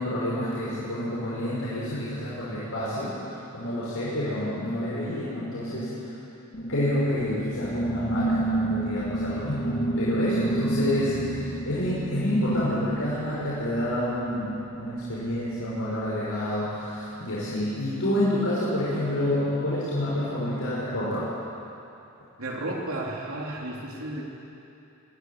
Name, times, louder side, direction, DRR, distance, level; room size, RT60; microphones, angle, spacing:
voice 1, 0.0-6.1 6.6-21.3, left 1 dB, 80° left, -9 dB, 5.6 m, -28 dB
sound 1, 6.5-14.3, right 2 dB, 45° left, 2.1 m, -30 dB
voice 2, 22.4-24.2, right 1 dB, 85° right, -2 dB, 3.1 m, -33 dB
21.5 x 13.0 x 9.5 m, 2.7 s
head